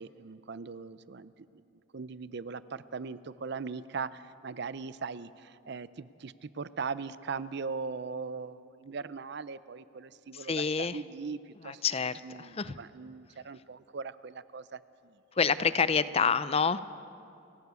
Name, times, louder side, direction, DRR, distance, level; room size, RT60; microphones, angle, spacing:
voice 1, 0.0-1.3 1.9-11.8 12.2-15.1, right 5 dB, 55° right, 16 dB, 0.5 m, -40 dB
voice 2, 10.3-11.0 11.6-12.8 15.4-16.8, left 5 dB, 30° left, 15 dB, 0.5 m, -28 dB
29.5 x 12.0 x 8.3 m, 2.6 s
head